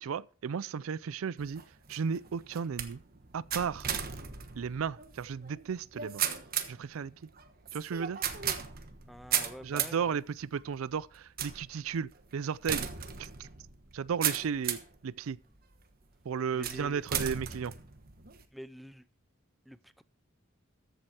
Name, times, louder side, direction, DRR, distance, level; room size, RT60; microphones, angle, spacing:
voice 1, 0.0-1.6 1.9-3.0 3.3-3.9 4.6-6.2 6.7-7.1 7.7-8.2 9.6-12.9 13.2-13.5 13.9-15.4 16.3-17.7, right 6 dB, 80° right, 0.4 m, -34 dB
sound 1, 1.4-15.0 15.6-16.0 16.6-18.4, right 8 dB, 45° right, 1.2 m, -36 dB
voice 2, 9.1-10.2 16.5-17.0 18.5-19.0 19.7-20.0, equal, ahead, 0.4 m, -47 dB
14.0 x 7.9 x 4.3 m
head